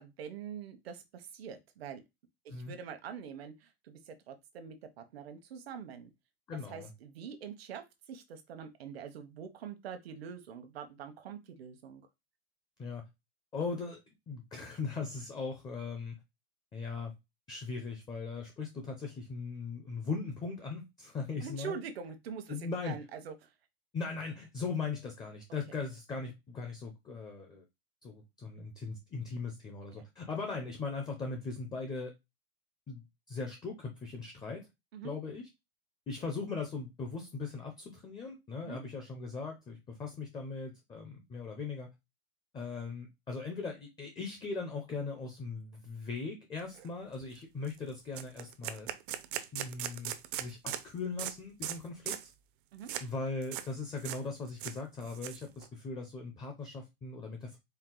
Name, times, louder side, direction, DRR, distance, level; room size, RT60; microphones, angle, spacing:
voice 1, 0.0-2.0 2.4-6.1 6.7-12.1 21.4-23.5 30.0-30.1 34.9-35.1 38.6-38.8 52.7-52.9, right 7 dB, 75° right, 1.1 m, -44 dB
voice 2, 6.5-6.9 12.8-13.1 13.5-14.0 14.3-16.1 16.7-17.1 17.5-21.8 22.5-23.0 23.9-27.6 28.0-32.1 32.9-34.7 35.0-35.5 36.1-41.9 42.5-48.9 49.5-52.2 53.0-57.6, left 4 dB, 15° left, 0.6 m, -39 dB
sound 1, 46.8-46.9 47.2-47.4 47.7-47.8 48.1-50.8 51.2-51.3 51.6-51.8 52.1-52.3 52.9-53.1 53.4-53.7 54.0-54.2 54.5-55.7, right 12 dB, 55° right, 0.6 m, -39 dB
4.5 x 2.1 x 3.8 m
supercardioid pair, 150°, 31 cm